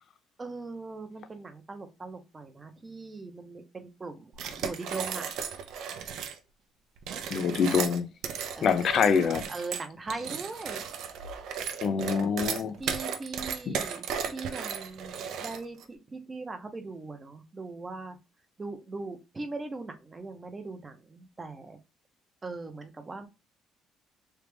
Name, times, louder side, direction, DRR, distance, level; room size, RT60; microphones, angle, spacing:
voice 1, 0.4-5.3 8.6-8.7 9.5-10.8 12.8-18.2 18.6-21.8 22.4-23.3, right 3 dB, 25° right, 0.7 m, -40 dB
sound 1, 4.3-6.4 7.0-15.8, right 7 dB, 70° right, 0.5 m, -35 dB
voice 2, 7.3-8.1 8.6-9.4 11.8-12.7 13.7-13.8, left 6 dB, 55° left, 0.4 m, -25 dB
3.3 x 2.4 x 3.3 m
cardioid pair, 105°, 0 cm